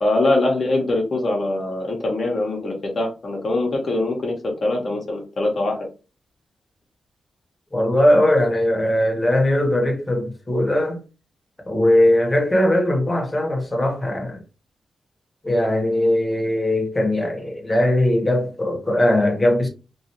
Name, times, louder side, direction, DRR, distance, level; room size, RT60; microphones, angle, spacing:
voice 1, 0.0-4.3 4.6-5.8, left 2 dB, 55° left, 1.0 m, -22 dB
voice 2, 7.7-11.0 11.6-14.4 15.4-19.7, left 1 dB, 20° left, 1.2 m, -19 dB
3.0 x 2.6 x 2.9 m
cardioid pair, 70°, 0 cm